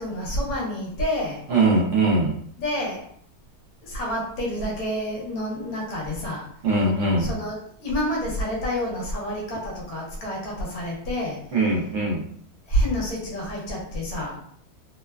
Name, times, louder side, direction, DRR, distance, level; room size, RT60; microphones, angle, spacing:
voice 1, 0.0-1.4 2.6-3.1 3.8-6.5 7.2-11.4 12.7-14.4, equal, 70° left, -2 dB, 1.2 m, -28 dB
voice 2, 1.5-2.3 6.6-7.3 11.5-12.2, right 2 dB, 60° right, -5 dB, 0.9 m, -21 dB
3.1 x 2.1 x 2.2 m, 0.64 s
omnidirectional pair, 1.6 m